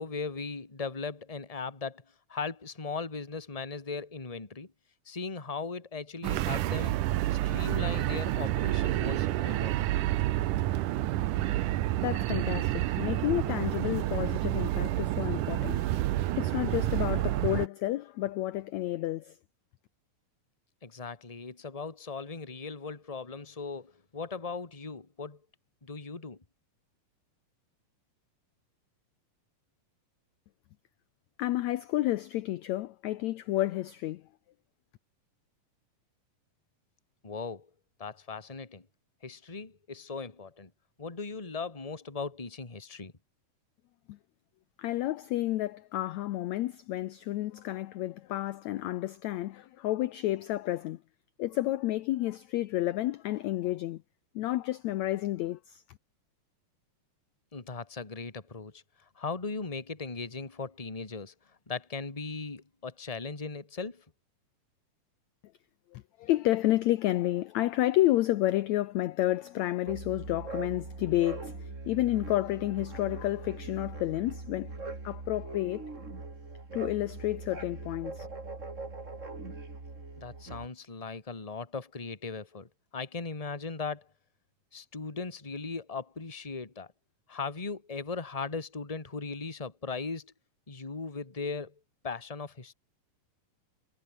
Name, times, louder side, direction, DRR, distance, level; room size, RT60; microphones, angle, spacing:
voice 1, 0.0-2.0 2.3-4.7 5.1-7.0 7.3-9.9 20.8-25.4 25.8-26.4 37.2-37.7 38.0-38.9 39.2-40.7 41.0-43.1 57.5-61.3 61.7-64.0 80.2-84.1 84.7-86.9 87.3-90.3 90.7-91.7 92.0-92.7, left 4 dB, 15° left, 1.8 m, -38 dB
sound 1, 6.2-17.7, right 15 dB, 70° right, 2.3 m, -29 dB
voice 2, 12.0-15.8 16.4-19.4 31.4-34.2 44.1-44.2 44.8-51.0 51.4-54.0 54.3-55.8 65.9-74.7 75.0-75.9 76.7-78.3, left 15 dB, 75° left, 1.7 m, -30 dB
sound 2, 69.8-80.7, right 3 dB, 20° right, 3.3 m, -41 dB
omnidirectional pair, 4.1 m